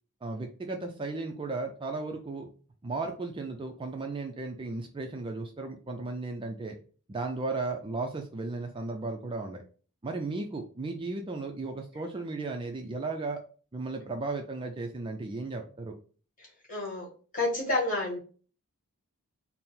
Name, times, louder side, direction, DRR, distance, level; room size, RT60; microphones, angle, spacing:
voice 1, 0.2-2.5 2.8-6.8 7.1-9.6 10.0-13.4 13.7-15.9, right 3 dB, 20° right, 4 dB, 0.4 m, -35 dB
voice 2, 16.4-17.1 17.3-18.2, left 2 dB, 35° left, -3 dB, 1.8 m, -30 dB
4.3 x 2.0 x 3.7 m, 0.39 s
head